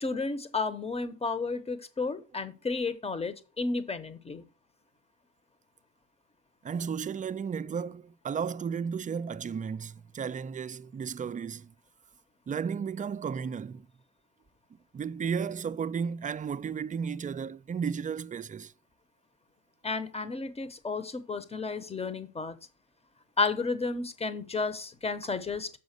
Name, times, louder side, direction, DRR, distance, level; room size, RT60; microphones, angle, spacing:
voice 1, 0.0-4.4 19.8-22.6 23.4-25.7, left 4 dB, 20° left, 1.0 m, -32 dB
voice 2, 6.6-11.7 12.5-13.9 14.9-18.7, right 6 dB, 25° right, 0.4 m, -34 dB
7.1 x 5.1 x 6.7 m
cardioid pair, 90°, 30 cm